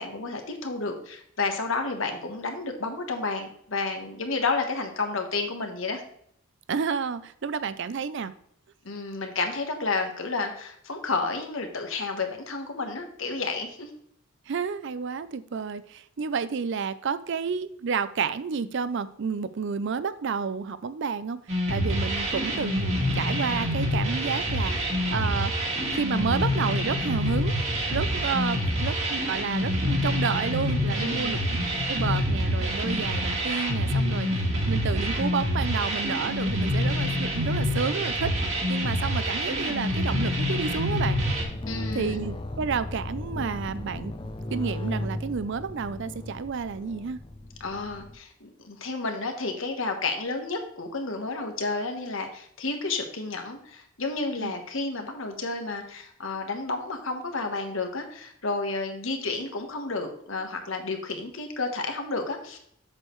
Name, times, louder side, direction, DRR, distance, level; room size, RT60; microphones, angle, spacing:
voice 1, 0.0-6.0 8.8-13.9 31.0-31.5 41.7-42.2 47.6-62.6, left 3 dB, 65° left, 4 dB, 1.2 m, -31 dB
voice 2, 6.7-8.3 14.5-21.4 21.7-25.5 25.9-27.5 27.9-31.4 31.9-34.3 34.7-38.3 38.7-41.2 41.9-44.1 44.5-47.2 54.4-54.5, right 5 dB, 55° right, 15 dB, 0.4 m, -30 dB
sound 1, 21.5-41.4, equal, 35° right, 1.7 m, -27 dB
sound 2, 40.8-48.2, left 1 dB, 25° left, 0.6 m, -36 dB
7.6 x 6.5 x 3.1 m, 0.69 s
head